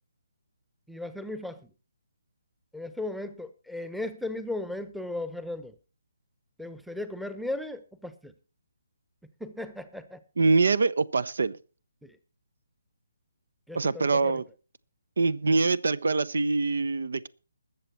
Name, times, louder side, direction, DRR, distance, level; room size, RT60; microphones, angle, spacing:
voice 1, 0.9-1.6 2.7-5.7 6.6-8.3 9.4-10.2 12.0-12.2 13.7-14.4, left 2 dB, ahead, 11 dB, 0.9 m, -36 dB
voice 2, 10.4-11.6 13.7-14.5 15.2-17.3, right 3 dB, 65° right, 21 dB, 0.8 m, -24 dB
21.0 x 7.2 x 4.3 m, 0.35 s
figure-of-eight pair, 145°, 0 cm